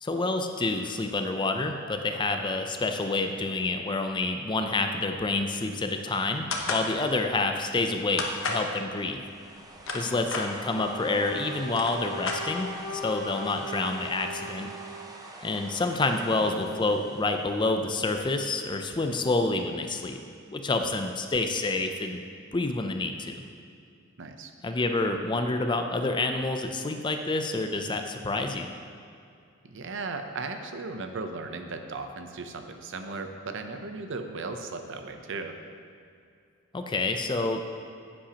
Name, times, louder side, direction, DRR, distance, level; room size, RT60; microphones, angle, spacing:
voice 1, 0.0-9.2 9.9-14.7 15.4-20.2 20.5-22.2 22.5-23.4 24.6-28.7 36.7-37.6, left 3 dB, 20° left, 5 dB, 0.4 m, -28 dB
sound 1, 6.5-6.9 8.2-8.7 9.6-10.5 11.3-11.4 11.6-12.8, left 3 dB, 65° left, 1.0 m, -31 dB
sound 2, 9.0-18.2, right 1 dB, 20° right, 0.7 m, -46 dB
Wind instrument woodwind instrument, 10.7-15.3, left 1 dB, 90° left, 1.9 m, -39 dB
voice 2, 16.3-16.8 24.2-24.5 29.6-35.6, right 3 dB, 60° right, 6 dB, 0.6 m, -37 dB
9.9 x 8.6 x 2.9 m, 2.4 s
head